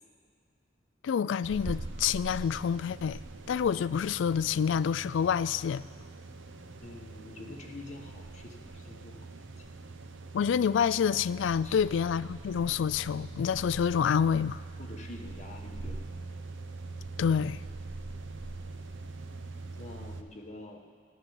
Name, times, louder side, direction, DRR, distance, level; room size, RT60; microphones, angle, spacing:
voice 1, 1.0-3.2 3.5-5.9 10.3-14.6 17.2-17.6, left 7 dB, 70° left, 0.3 m, -27 dB
Road Train on the Tanami Track, 1.4-20.2, right 2 dB, 80° right, 0.7 m, -43 dB
sound 1, 1.5-5.4, equal, 35° right, 3.6 m, -55 dB
voice 2, 6.8-9.3 9.6-9.7 11.6-11.8 14.8-16.0 19.7-20.8, left 2 dB, 35° left, 1.3 m, -46 dB
14.0 x 6.7 x 9.7 m
head